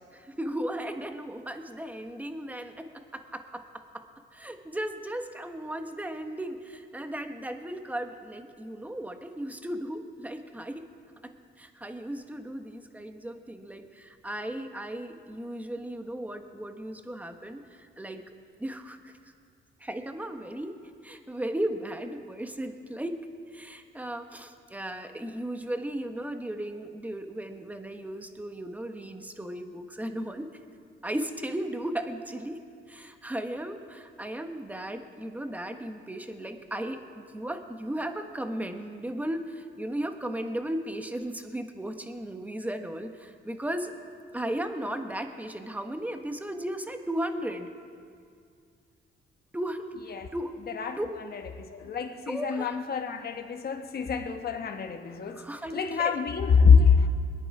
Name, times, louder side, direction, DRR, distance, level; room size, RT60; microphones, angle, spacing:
voice 1, 0.1-4.1 4.3-10.9 11.2-11.3 11.6-18.2 18.6-19.1 19.8-20.8 21.0-23.2 23.5-30.5 31.0-32.6 32.9-43.9 44.3-47.7 49.5-49.9 50.3-50.6 51.0-51.1 52.2-52.8 55.3-56.2, right 1 dB, 10° right, 6 dB, 1.2 m, -36 dB
voice 2, 51.3-55.4 55.7-57.1, left 5 dB, 50° left, 6 dB, 1.2 m, -24 dB
22.0 x 10.0 x 4.8 m, 2.3 s
cardioid pair, 90°, 20 cm